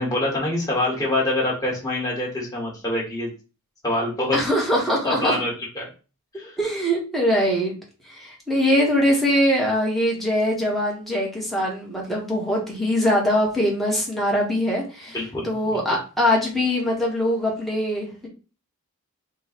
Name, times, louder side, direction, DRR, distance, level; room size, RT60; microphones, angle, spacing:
voice 1, 0.0-3.3 3.8-4.4 5.0-5.9 6.3-6.6 15.1-16.0, left 1 dB, 15° left, -4 dB, 1.6 m, -25 dB
voice 2, 4.3-5.4 6.3-7.7 8.1-15.2 15.4-18.3, equal, ahead, -3 dB, 1.2 m, -22 dB
3.9 x 2.4 x 4.0 m, 0.34 s
head